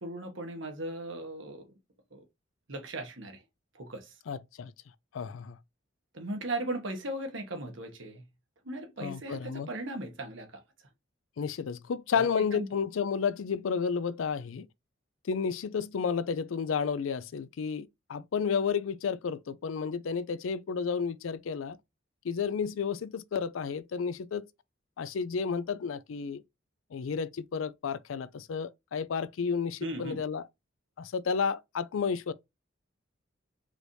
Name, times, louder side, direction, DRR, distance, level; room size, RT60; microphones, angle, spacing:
voice 1, 0.0-1.7 2.1-2.2 2.7-3.4 3.7-4.1 6.1-8.2 8.6-10.6 12.1-12.3 12.5-12.7 29.8-30.2, right 1 dB, 70° right, 1.3 m, -37 dB
voice 2, 4.3-4.7 5.1-5.6 9.0-9.7 11.4-14.7 15.3-21.8 22.2-24.4 25.0-26.4 26.9-30.4 31.0-32.3, left 6 dB, 80° left, 0.4 m, -31 dB
4.8 x 2.7 x 3.1 m
head